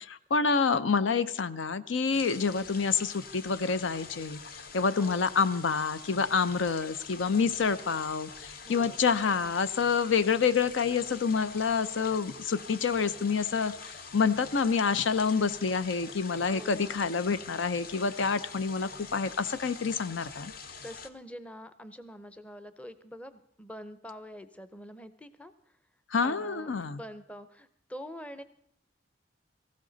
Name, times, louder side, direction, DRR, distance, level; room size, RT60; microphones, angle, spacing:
voice 1, 0.0-4.4 4.7-20.5 26.1-27.0, left 5 dB, 80° left, 14 dB, 0.6 m, -28 dB
sound 1, 2.1-21.1, left 5 dB, 50° left, 0.8 m, -45 dB
voice 2, 8.6-9.0 16.5-17.0 20.8-25.5 26.2-28.4, equal, 5° left, 12 dB, 0.6 m, -45 dB
18.0 x 15.0 x 4.0 m, 0.68 s
head